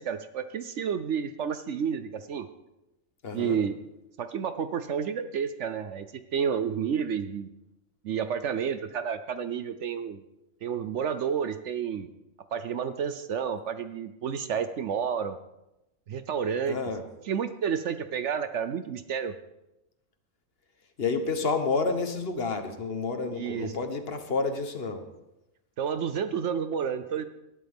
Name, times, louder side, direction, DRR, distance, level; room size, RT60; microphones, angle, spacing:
voice 1, 0.0-2.5 3.3-3.8 4.2-7.5 8.0-10.2 10.6-12.1 12.5-15.4 16.1-16.8 17.3-19.4 23.3-23.7 25.8-27.3, right 7 dB, 65° right, 11 dB, 0.9 m, -30 dB
voice 2, 3.2-3.6 16.7-17.0 21.0-25.1, left 4 dB, 45° left, 7 dB, 1.2 m, -29 dB
18.5 x 12.0 x 3.6 m, 0.92 s
omnidirectional pair, 1.5 m